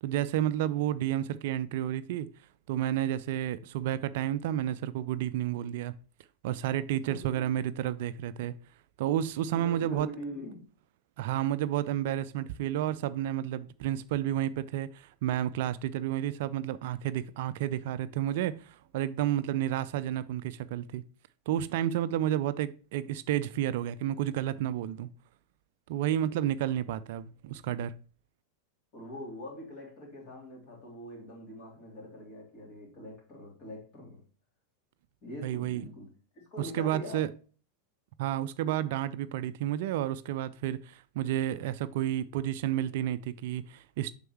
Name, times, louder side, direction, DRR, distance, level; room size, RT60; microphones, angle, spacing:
voice 1, 0.0-2.3 2.7-5.9 6.4-8.5 9.0-10.1 11.2-21.0 21.5-25.1 25.9-27.9 35.4-35.9 36.6-37.3 38.2-44.1, right 12 dB, 55° right, 0.3 m, -31 dB
voice 2, 7.0-7.6 9.5-10.7 28.9-34.2 35.2-36.1 36.5-37.3, left 1 dB, 40° left, 3.4 m, -43 dB
7.7 x 5.3 x 3.0 m
figure-of-eight pair, 90°, 0 cm